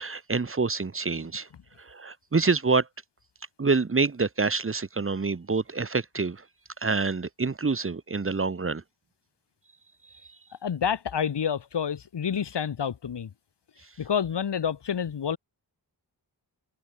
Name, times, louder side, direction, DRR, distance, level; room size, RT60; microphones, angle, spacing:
voice 1, 0.0-1.5 1.8-2.9 3.6-6.4 6.8-8.8, right 4 dB, 30° right, 1.3 m, -27 dB
voice 2, 10.6-13.3 14.0-15.4, left 8 dB, 80° left, 2.1 m, -28 dB
wide cardioid pair, 95°, 41 cm